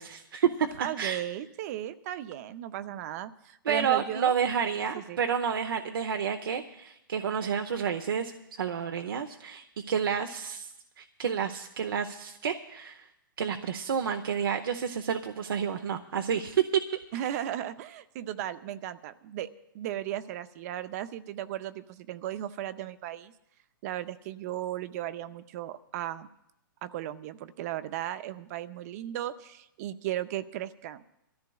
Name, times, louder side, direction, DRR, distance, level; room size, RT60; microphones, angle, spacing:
voice 1, 0.0-1.2 3.7-8.3 8.6-10.7 11.0-13.1 13.4-16.8, right 7 dB, 80° right, 5 dB, 0.7 m, -30 dB
voice 2, 0.8-4.3 4.9-5.2 17.1-19.5 19.7-23.3 23.8-26.3 26.8-31.0, right 12 dB, 45° right, 12 dB, 0.6 m, -36 dB
24.5 x 14.0 x 2.3 m, 0.80 s
hypercardioid pair, 130°, 12 cm